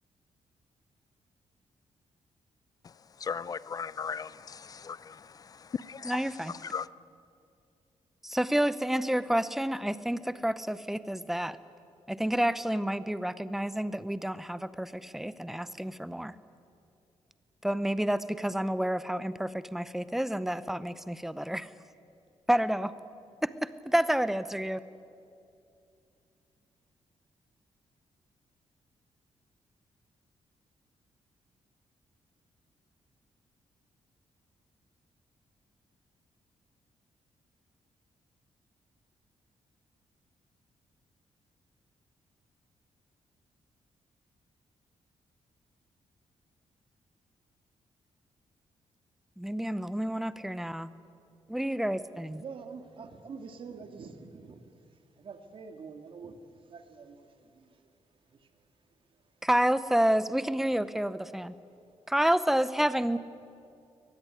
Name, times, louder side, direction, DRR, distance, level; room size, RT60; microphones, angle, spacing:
voice 1, 3.2-5.0 5.9-6.1 6.7-6.9, left 6 dB, 35° left, 0.5 m, -36 dB
voice 2, 6.0-6.5 8.2-11.6 12.1-16.3 17.6-21.7 22.5-22.9 23.4-23.5 23.9-24.8 49.4-50.9 51.5-52.4 59.4-61.5 62.1-63.2, right 1 dB, 5° right, 0.7 m, -29 dB
voice 3, 52.4-54.6 55.2-56.4 56.7-57.7, right 5 dB, 50° right, 2.2 m, -45 dB
22.0 x 20.0 x 9.9 m
wide cardioid pair, 155°, 11 cm